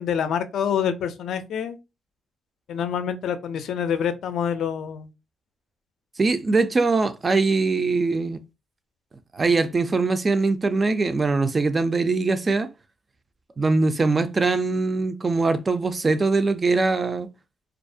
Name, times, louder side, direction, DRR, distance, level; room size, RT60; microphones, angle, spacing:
voice 1, 0.0-1.8 2.7-5.1, left 8 dB, 70° left, 0.4 m, -26 dB
voice 2, 6.2-8.4 9.3-12.7 13.6-17.3, right 3 dB, 30° right, 0.3 m, -22 dB
2.4 x 2.1 x 2.6 m
cardioid pair, 90°, 0 cm